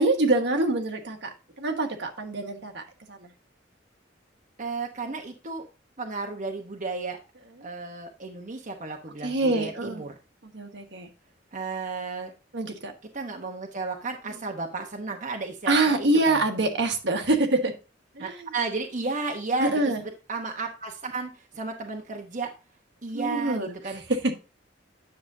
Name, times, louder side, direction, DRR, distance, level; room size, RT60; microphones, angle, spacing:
voice 1, 0.0-3.3 9.2-10.0 10.5-11.1 12.5-12.9 15.7-17.8 18.1-18.5 19.6-20.0 23.1-24.3, right 2 dB, 70° right, 4 dB, 1.5 m, -25 dB
voice 2, 4.6-5.6 6.0-7.2 7.6-10.1 11.5-12.3 13.1-16.4 18.2-22.5 23.0-24.0, right 3 dB, 45° right, 1 dB, 1.1 m, -33 dB
9.8 x 6.8 x 2.7 m, 0.30 s
head